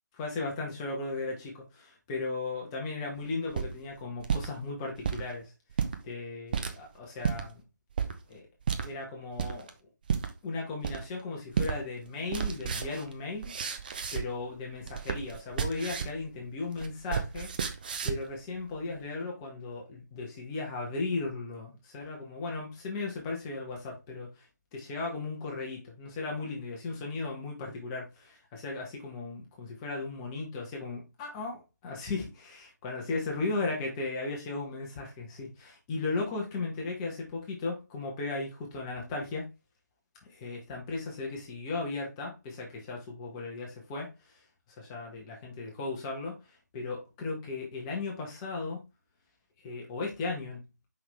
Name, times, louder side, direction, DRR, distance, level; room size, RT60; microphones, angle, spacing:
voice 1, 0.2-5.5 6.0-7.6 8.3-8.4 8.8-9.7 10.4-13.5 14.1-17.5 18.0-24.5 24.7-39.5 40.3-44.4 44.7-48.8 49.6-50.6, left 3 dB, 15° left, 1.6 m, -36 dB
sound 1, 3.3-4.5 4.9-5.2 5.7-6.0 6.5-6.7 7.2-7.4 8.0-8.1 8.7-8.9 9.4-9.7 10.1-10.3 10.8-11.2 11.6-11.8 12.1-14.4 14.7-16.2 16.5-18.3, right 7 dB, 30° right, 0.7 m, -32 dB
5.7 x 5.6 x 3.4 m
figure-of-eight pair, 150°, 10 cm